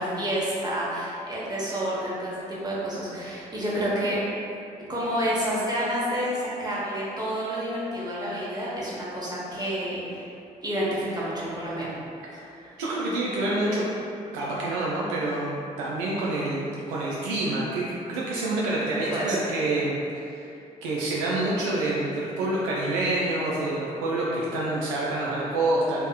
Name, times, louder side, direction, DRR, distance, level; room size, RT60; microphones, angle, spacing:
voice 1, 0.0-4.2 4.9-10.3 10.6-12.0 12.3-12.8 19.1-19.4, equal, 20° right, -7 dB, 1.0 m, -29 dB
voice 2, 12.8-13.9 14.3-20.5 20.8-26.1, right 2 dB, 70° right, -5 dB, 0.4 m, -27 dB
3.2 x 2.9 x 2.3 m, 2.6 s
figure-of-eight pair, 40°, 20 cm